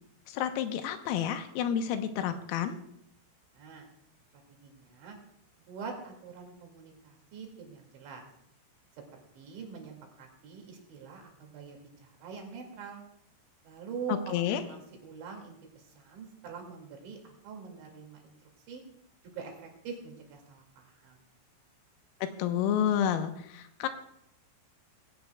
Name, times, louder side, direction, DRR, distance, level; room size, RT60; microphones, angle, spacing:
voice 1, 0.3-2.8 14.1-14.6 22.2-23.9, left 9 dB, 85° left, 7 dB, 3.6 m, -30 dB
voice 2, 3.5-3.9 4.5-5.2 5.7-8.2 9.1-13.0 13.6-15.6 16.0-18.3 18.7-18.8 19.3-19.5 19.8-21.2, right 6 dB, 65° right, 1 dB, 4.5 m, -44 dB
20.5 x 16.5 x 2.3 m, 0.76 s
omnidirectional pair, 5.9 m